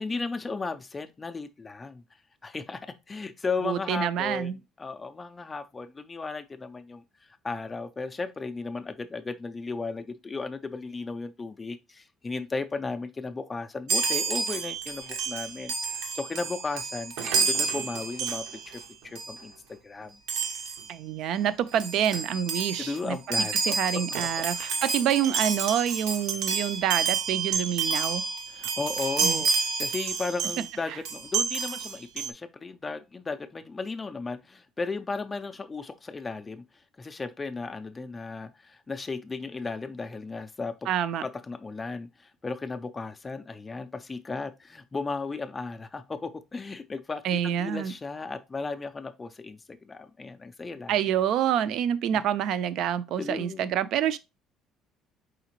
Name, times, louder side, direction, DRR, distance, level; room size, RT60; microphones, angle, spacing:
voice 1, 0.0-2.0 2.4-4.5 4.8-20.2 22.8-24.0 28.5-29.5 29.8-36.6 37.0-40.7 41.2-51.0 52.1-52.2 53.2-53.7, left 4 dB, 15° left, 0.3 m, -35 dB
voice 2, 3.6-4.6 20.9-28.2 29.2-29.4 30.9-31.0 40.9-41.2 47.2-47.9 50.9-54.2, right 9 dB, 55° right, 0.4 m, -27 dB
Chime, 13.9-18.8 19.1-19.4 20.3-20.9 21.4-21.5 21.7-30.7 31.0-32.3, right 5 dB, 80° right, 0.8 m, -29 dB
4.9 x 3.6 x 3.0 m
cardioid pair, 170°, 0 cm